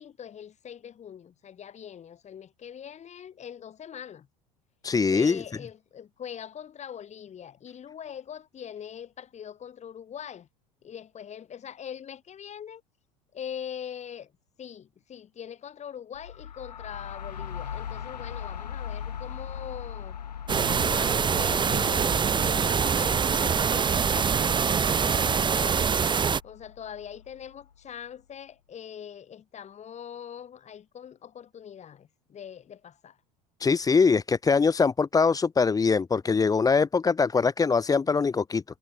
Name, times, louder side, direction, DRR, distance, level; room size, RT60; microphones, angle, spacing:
voice 1, 0.0-4.3 5.1-10.5 10.8-12.8 13.3-14.3 14.6-20.2 20.6-25.9 26.4-33.2, left 8 dB, 35° left, 7.3 m, -42 dB
voice 2, 4.8-5.4 33.6-38.6, left 5 dB, 15° left, 1.1 m, -23 dB
sound 1, 16.1-27.8, left 8 dB, 80° left, 5.9 m, -40 dB
sound 2, 20.5-26.4, right 6 dB, 20° right, 1.3 m, -24 dB
figure-of-eight pair, 75°, 21 cm